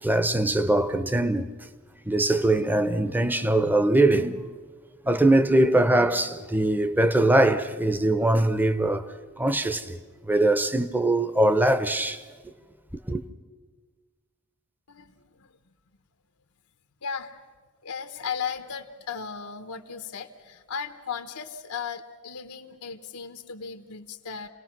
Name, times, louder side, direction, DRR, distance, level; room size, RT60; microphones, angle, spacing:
voice 1, 0.0-1.5 2.1-4.5 5.0-9.1 9.4-10.0 10.2-12.2 13.1-13.2, right 1 dB, 10° right, 0.7 m, -22 dB
voice 2, 14.9-15.6 17.0-17.3 17.8-24.5, left 6 dB, 90° left, 1.1 m, -36 dB
28.0 x 18.5 x 6.0 m
head